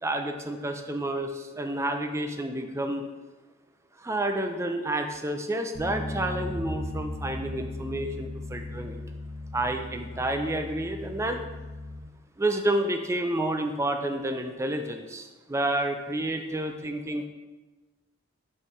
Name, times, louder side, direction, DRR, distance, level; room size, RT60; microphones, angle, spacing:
voice 1, 0.0-3.0 4.0-9.0 9.5-11.4 12.4-17.3, right 1 dB, 15° right, 5 dB, 0.5 m, -30 dB
Bass guitar, 5.7-12.0, left 2 dB, 40° left, 0.9 m, -37 dB
sound 1, 6.4-8.6, right 3 dB, 55° right, 0.9 m, -42 dB
5.0 x 4.4 x 5.5 m, 1.2 s
head